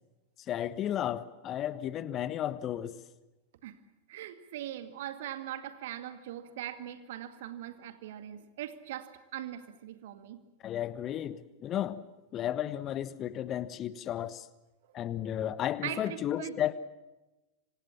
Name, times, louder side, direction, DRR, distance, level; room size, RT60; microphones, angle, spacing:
voice 1, 0.5-2.9 10.6-12.0 12.3-14.5 14.9-16.7, left 11 dB, 30° left, 1.3 m, -33 dB
voice 2, 4.1-10.4 15.8-16.6, right 12 dB, 55° right, 2.1 m, -41 dB
27.0 x 25.5 x 7.4 m
figure-of-eight pair, 90°, 0 cm